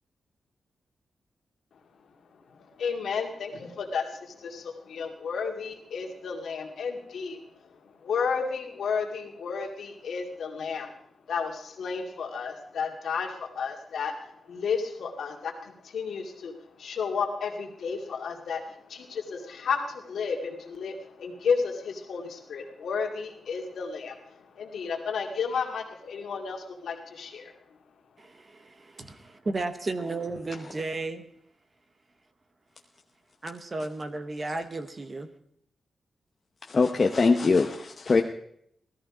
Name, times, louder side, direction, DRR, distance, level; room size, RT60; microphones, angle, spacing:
voice 1, 2.5-10.9 11.3-27.5, left 5 dB, 65° left, 2.2 m, -32 dB
voice 2, 28.2-31.2 33.4-35.3, right 2 dB, 25° right, 0.9 m, -34 dB
voice 3, 36.7-38.2, left 4 dB, 30° left, 0.8 m, -22 dB
17.0 x 13.5 x 4.9 m
wide cardioid pair, 175°, 0 cm